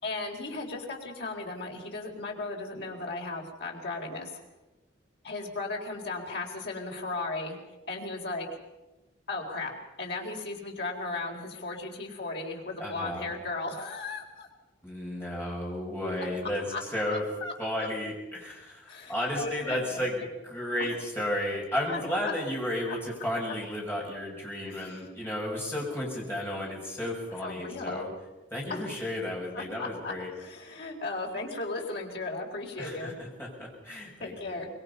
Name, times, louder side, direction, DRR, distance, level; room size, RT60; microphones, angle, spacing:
voice 1, 0.0-4.4 5.2-7.6 7.9-8.5 9.3-14.5 16.7-16.8 17.1-17.9 18.9-20.3 21.9-22.3 22.9-23.0 24.7-25.0 27.4-28.1 28.7-28.8 29.5-30.1 30.4-33.1 34.2-34.7, left 3 dB, 60° left, 0 dB, 4.3 m, -36 dB
voice 2, 12.8-13.3 14.8-16.6 16.9-17.2 17.6-28.1 28.5-30.3 32.8-34.6, left 1 dB, 10° left, -3 dB, 6.0 m, -33 dB
25.0 x 21.5 x 5.6 m, 1.1 s
head